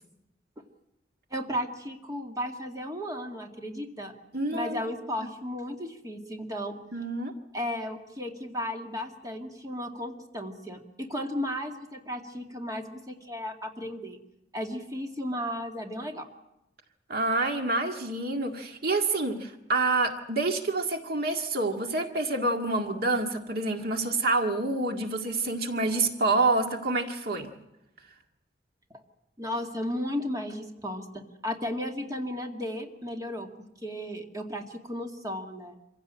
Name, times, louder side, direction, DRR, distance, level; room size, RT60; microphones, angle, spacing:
voice 1, 1.3-4.1 4.5-6.8 7.5-14.2 14.5-16.3 28.9-29.0 29.4-33.5 33.8-35.8, left 1 dB, 20° right, 3 dB, 2.2 m, -34 dB
voice 2, 4.3-4.8 6.9-7.3 17.1-27.5, right 2 dB, 60° right, 4 dB, 2.0 m, -27 dB
26.0 x 16.5 x 8.9 m, 0.89 s
head